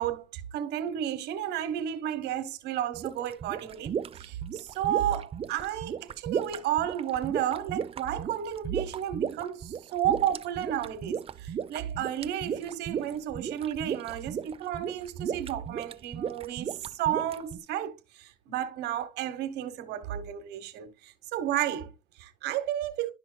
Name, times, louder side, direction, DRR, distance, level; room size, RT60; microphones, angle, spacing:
voice 1, 0.0-23.1, right 11 dB, 85° right, 1.2 m, -32 dB
Bubbling water, 2.9-17.6, right 8 dB, 35° right, 0.5 m, -35 dB
11.0 x 5.8 x 2.2 m
cardioid pair, 110°, 17 cm